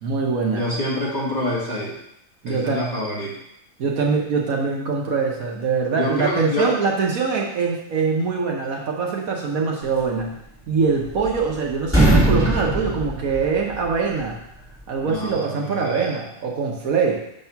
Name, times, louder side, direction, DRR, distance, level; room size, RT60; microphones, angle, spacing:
voice 1, 0.0-0.6 2.4-2.8 3.8-10.4 10.7-14.4 14.9-17.2, right 5 dB, 65° right, -1 dB, 1.4 m, -23 dB
voice 2, 0.5-1.9 2.5-3.4 5.9-6.7 15.0-16.2, left 1 dB, 25° left, -6 dB, 2.4 m, -27 dB
sound 1, 10.7-11.5 11.8-14.0, right 1 dB, 10° right, 2.6 m, -20 dB
6.9 x 3.6 x 5.7 m, 0.78 s
omnidirectional pair, 1.6 m